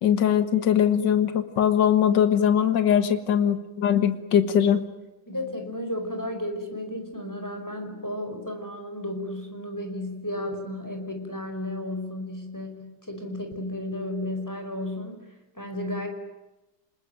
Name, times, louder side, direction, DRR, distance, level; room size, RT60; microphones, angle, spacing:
voice 1, 0.0-4.8, left 9 dB, 65° left, 10 dB, 2.2 m, -21 dB
voice 2, 5.3-15.3 15.5-16.1, left 1 dB, 10° left, 4 dB, 5.0 m, -33 dB
28.0 x 20.5 x 9.2 m, 1.0 s
omnidirectional pair, 2.1 m